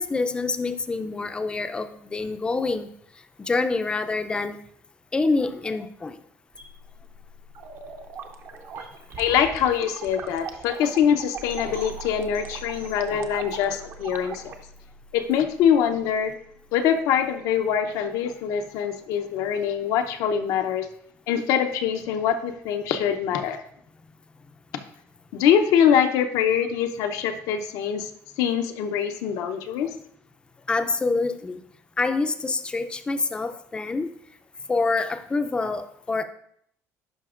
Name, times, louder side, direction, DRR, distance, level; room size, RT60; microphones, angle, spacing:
voice 1, 0.0-2.9 3.4-4.6 5.1-6.2 30.7-31.6 32.0-34.1 34.7-36.2, left 3 dB, 15° left, 9 dB, 0.4 m, -26 dB
sound 1, 6.5-18.6, equal, 90° right, 2.8 m, -45 dB
sound 2, 7.5-14.6, right 6 dB, 45° right, 0.7 m, -40 dB
voice 2, 9.2-14.5 15.1-16.4 16.7-20.9 21.3-23.6 25.3-28.1 28.4-29.9, left 8 dB, 80° left, 7 dB, 0.7 m, -23 dB
11.0 x 5.1 x 2.4 m, 0.69 s
cardioid pair, 140°, 6 cm